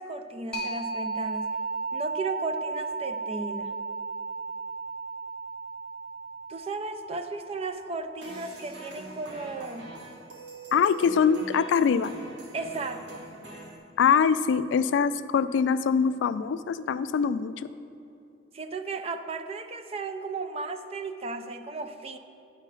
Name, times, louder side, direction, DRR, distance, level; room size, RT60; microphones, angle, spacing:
voice 1, 0.0-1.6 1.9-3.8 6.5-9.9 12.5-13.3 18.5-22.2, right 3 dB, 35° right, 8 dB, 0.4 m, -35 dB
sound 1, 0.5-9.9, right 4 dB, 5° left, 1.0 m, -35 dB
sound 2, 8.2-13.8, right 3 dB, 65° right, 1.2 m, -43 dB
voice 2, 10.7-12.1 14.0-17.5, left 6 dB, 80° left, 14 dB, 0.3 m, -23 dB
9.0 x 4.5 x 5.6 m, 2.8 s
head